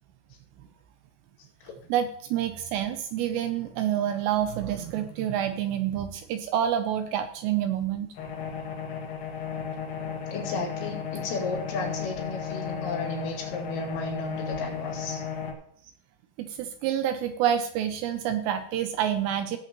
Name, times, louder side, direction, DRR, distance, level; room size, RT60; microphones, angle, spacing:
voice 1, 1.9-8.1 16.4-19.6, right 10 dB, 80° right, 8 dB, 2.6 m, -28 dB
sound 1, 8.2-15.5, left 6 dB, 55° left, 2.4 m, -34 dB
voice 2, 10.3-15.2, left 3 dB, 75° left, -3 dB, 4.8 m, -34 dB
17.5 x 7.9 x 3.0 m, 0.63 s
omnidirectional pair, 5.5 m